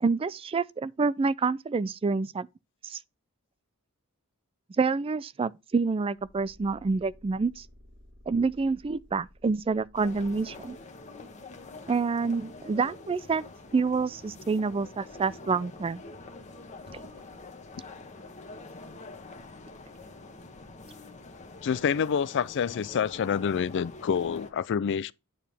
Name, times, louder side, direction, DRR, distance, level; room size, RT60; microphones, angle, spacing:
voice 1, 0.0-2.5 2.8-3.0 4.8-7.7 8.3-10.8 11.9-13.4 13.7-16.0 16.9-17.0, right 4 dB, 25° right, 0.3 m, -27 dB
sound 1, 6.2-11.1, equal, 45° right, 2.1 m, -55 dB
sound 2, 9.9-24.5, left 3 dB, 30° left, 1.1 m, -46 dB
voice 2, 21.6-25.1, left 7 dB, 55° left, 0.4 m, -27 dB
9.0 x 4.7 x 3.3 m
head